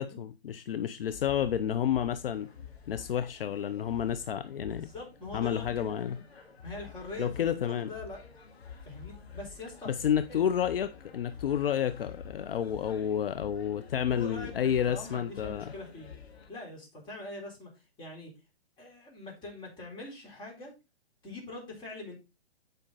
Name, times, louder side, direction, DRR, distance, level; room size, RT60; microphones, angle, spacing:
voice 1, 0.0-2.5 2.9-4.9 5.3-6.2 7.2-7.9 9.9-15.7, left 9 dB, 60° left, 0.7 m, -30 dB
sound 1, 1.1-16.5, left 7 dB, 80° left, 2.2 m, -48 dB
voice 2, 4.8-6.2 6.6-8.2 8.8-9.9 10.3-10.4 14.1-16.1 16.5-17.7 18.0-18.3 18.8-20.7 21.2-22.1, left 2 dB, 15° left, 4.1 m, -43 dB
9.1 x 5.2 x 4.0 m
hypercardioid pair, 145°, 32 cm